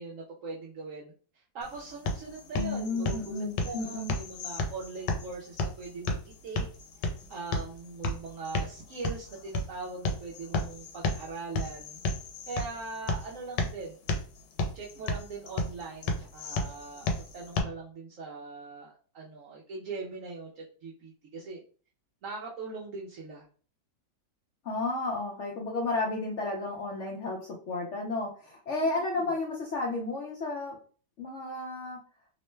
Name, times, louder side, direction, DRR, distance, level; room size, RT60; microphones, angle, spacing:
voice 1, 0.0-6.7 7.3-12.0 12.5-14.0 14.7-21.6 22.2-23.5 28.8-29.2, right 3 dB, 70° right, -2 dB, 0.7 m, -41 dB
sound 1, 1.6-17.6, left 2 dB, 90° left, 1.2 m, -34 dB
voice 2, 2.5-4.1 24.6-30.7 31.2-32.0, left 2 dB, 65° left, -1 dB, 0.7 m, -32 dB
2.9 x 2.1 x 3.1 m, 0.41 s
omnidirectional pair, 1.8 m